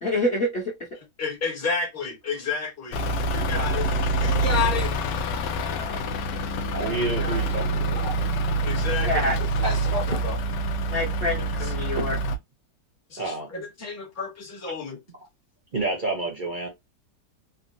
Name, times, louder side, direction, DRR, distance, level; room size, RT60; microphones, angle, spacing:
voice 1, 0.0-0.7 5.5-6.0 9.0-9.4 10.9-12.2, left 1 dB, 45° left, 1.1 m, -27 dB
voice 2, 1.2-3.0 3.3-4.9 7.2-7.4 8.6-10.4 13.1-15.0, left 5 dB, 15° left, 0.6 m, -31 dB
Truck / Idling, 2.9-12.4, right 2 dB, 80° left, 1.2 m, -26 dB
voice 3, 6.7-8.2 9.6-9.7 13.2-13.5 15.7-16.7, right 3 dB, 40° right, 0.7 m, -29 dB
3.6 x 2.1 x 2.6 m
omnidirectional pair, 1.8 m